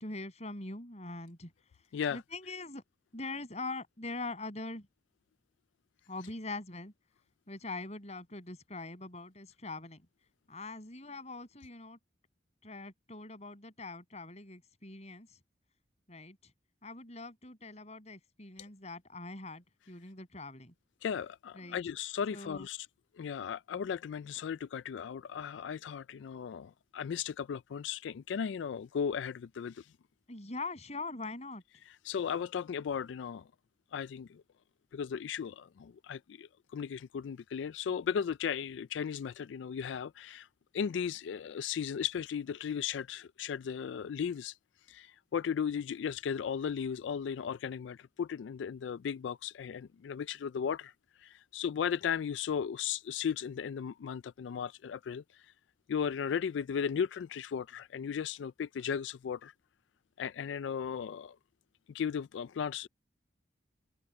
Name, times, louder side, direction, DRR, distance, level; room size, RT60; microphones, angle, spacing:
voice 1, 0.0-1.5 2.1-2.8 3.1-4.9 6.1-6.9 7.5-10.0 10.5-12.0 12.6-15.4 16.1-16.4 16.8-20.7 21.6-21.8 22.3-22.7 30.3-31.6, left 3 dB, 35° left, 7.2 m, -42 dB
voice 2, 21.0-22.9 23.2-29.9 31.9-33.4 33.9-34.4 34.9-40.5 40.7-44.6 44.9-50.9 51.2-55.4 55.9-59.5 60.2-61.4 61.9-62.9, left 7 dB, 80° left, 0.3 m, -36 dB
head